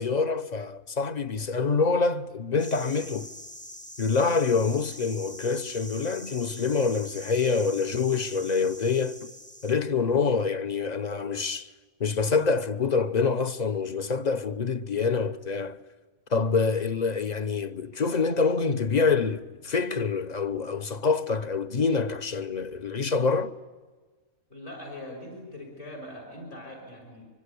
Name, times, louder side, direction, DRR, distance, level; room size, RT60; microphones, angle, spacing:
voice 1, 0.0-3.3 4.0-9.3 9.6-11.7 12.0-15.8 16.3-23.5, left 4 dB, 35° left, 0.8 m, -26 dB
sound 1, 2.6-9.7, equal, 5° left, 0.7 m, -44 dB
voice 2, 24.5-27.3, left 1 dB, 60° left, 6.0 m, -41 dB
25.0 x 24.0 x 8.4 m
omnidirectional pair, 1.4 m